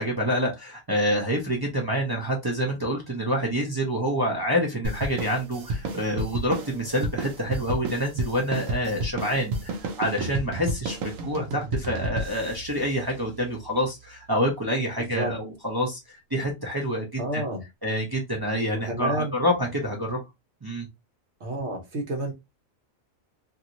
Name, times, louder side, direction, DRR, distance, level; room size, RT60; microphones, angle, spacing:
voice 1, 0.0-17.4 17.8-20.2 20.6-20.9, equal, 25° right, -2 dB, 0.5 m, -27 dB
sound 1, 4.8-13.7, right 2 dB, 80° right, 1.0 m, -32 dB
voice 2, 17.2-17.6 18.6-19.3 21.4-22.3, right 1 dB, 60° right, 2 dB, 1.1 m, -30 dB
2.9 x 2.8 x 2.5 m, 0.21 s
omnidirectional pair, 1.4 m